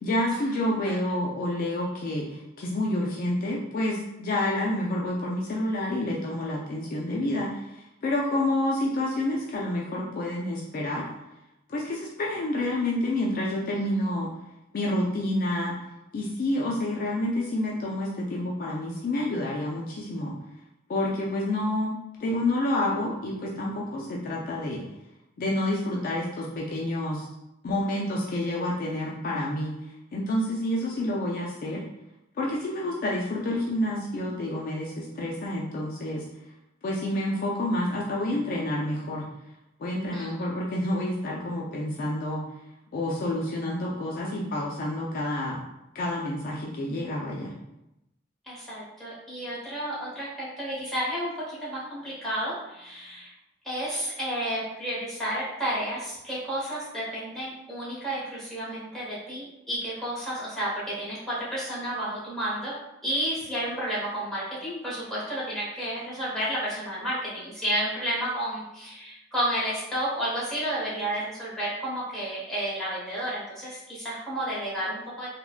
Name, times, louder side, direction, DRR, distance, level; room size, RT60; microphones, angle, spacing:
voice 1, 0.0-11.0 11.7-14.3 14.7-15.7 16.1-20.3 20.9-24.8 25.4-27.3 27.6-29.8 30.1-31.8 32.4-36.3 36.8-39.2 39.8-42.4 42.9-45.6 45.9-47.5, left 1 dB, 45° left, -3 dB, 0.3 m, -28 dB
voice 2, 48.5-53.3 53.6-62.7 63.0-75.3, right 1 dB, ahead, -9 dB, 1.1 m, -31 dB
3.4 x 2.1 x 2.4 m, 0.88 s
head